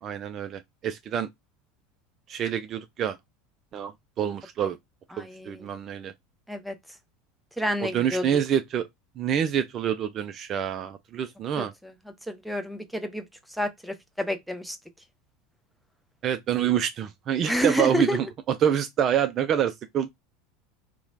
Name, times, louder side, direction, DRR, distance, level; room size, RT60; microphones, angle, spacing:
voice 1, 0.0-1.3 2.3-3.2 3.7-3.9 4.2-4.8 5.2-6.1 7.8-8.9 9.2-11.7 16.2-20.1, right 9 dB, 40° right, 0.3 m, -27 dB
voice 2, 5.1-5.7 6.5-6.7 7.6-8.3 11.6-11.9 12.3-13.2 13.5-14.8 17.4-18.2, equal, ahead, 0.6 m, -29 dB
2.9 x 2.1 x 2.4 m
figure-of-eight pair, 75°, 0 cm